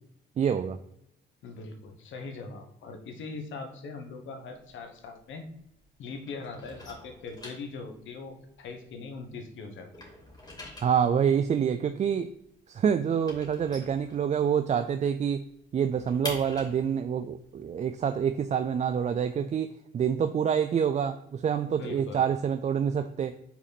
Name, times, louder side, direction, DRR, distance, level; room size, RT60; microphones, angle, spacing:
voice 1, 0.4-0.8 10.8-12.3 12.7-15.4 15.7-23.4, right 8 dB, 35° right, 8 dB, 0.4 m, -27 dB
voice 2, 1.4-5.4 6.0-10.1 21.7-22.2, left 4 dB, 75° left, 5 dB, 1.2 m, -41 dB
sound 1, 4.5-5.9 6.2-9.4 9.7-14.7 15.1-15.2 15.5-19.2, left 1 dB, 20° left, 2.5 m, -45 dB
5.9 x 4.2 x 4.1 m, 0.76 s
cardioid pair, 90°, 20 cm